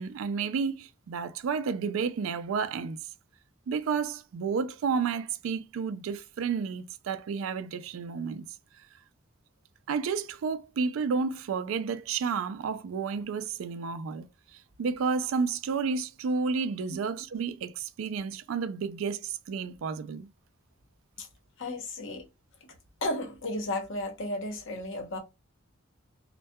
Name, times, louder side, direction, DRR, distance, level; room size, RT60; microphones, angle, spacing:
voice 1, 0.0-3.0 3.7-8.5 9.9-14.3 14.8-20.3, right 5 dB, 70° right, 0.3 m, -31 dB
voice 2, 21.6-22.2 22.6-22.7 23.0-25.2, left 1 dB, 65° left, 0.8 m, -34 dB
2.2 x 2.1 x 2.7 m
head